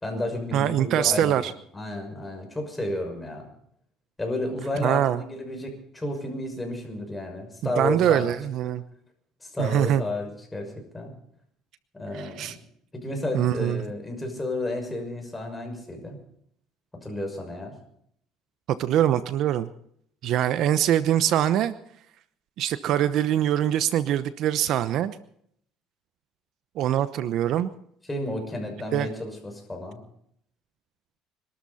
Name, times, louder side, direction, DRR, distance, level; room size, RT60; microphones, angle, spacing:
voice 1, 0.0-3.5 4.2-8.2 8.6-8.7 9.4-11.1 11.9-12.6 12.9-16.2 17.0-17.7 28.1-30.0, left 1 dB, 10° left, 3 dB, 6.1 m, -32 dB
voice 2, 0.5-1.5 4.7-5.2 7.8-8.8 9.6-10.0 12.1-12.6 13.3-13.8 18.7-19.7 20.2-21.7 22.6-25.1 26.8-27.7 28.9-29.1, right 11 dB, 60° right, 13 dB, 0.9 m, -23 dB
25.5 x 13.0 x 4.3 m, 0.69 s
cardioid pair, 105°, 0 cm